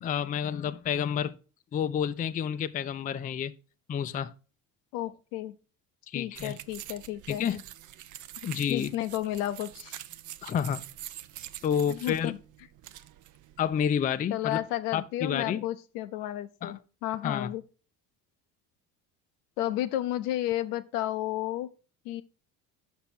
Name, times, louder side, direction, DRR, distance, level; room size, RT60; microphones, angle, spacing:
voice 1, 0.0-1.3 1.7-3.5 3.9-4.3 6.1-6.6 7.3-7.6 8.4-8.9 10.4-10.9 11.6-12.3 13.6-14.6 14.9-15.6 16.6-16.8 17.2-17.5, left 8 dB, 20° left, 0.4 m, -29 dB
voice 2, 4.9-5.5 6.1-7.5 8.7-10.0 11.9-12.4 14.3-17.6 19.6-21.7 22.0-22.2, left 13 dB, 75° left, 0.7 m, -32 dB
sound 1, 6.3-13.9, right 13 dB, 40° right, 0.5 m, -45 dB
5.9 x 5.6 x 4.2 m
hypercardioid pair, 60°, 46 cm